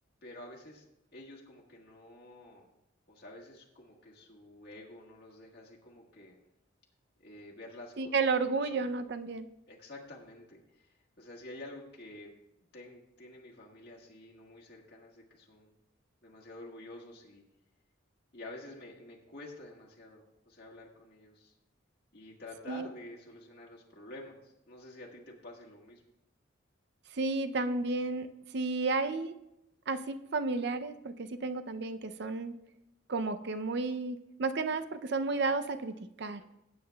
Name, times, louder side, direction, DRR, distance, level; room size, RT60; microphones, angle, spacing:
voice 1, 0.2-2.7 3.1-6.4 7.2-8.8 9.7-12.3 12.7-15.7 16.2-17.4 18.3-21.5 22.1-26.0 36.4-36.5, left 1 dB, 55° left, -3 dB, 1.5 m, -50 dB
voice 2, 8.0-9.5 22.7-22.9 27.1-29.3 29.9-32.5 33.1-36.4, right 3 dB, 55° right, 10 dB, 0.5 m, -32 dB
19.0 x 8.7 x 2.3 m, 0.87 s
head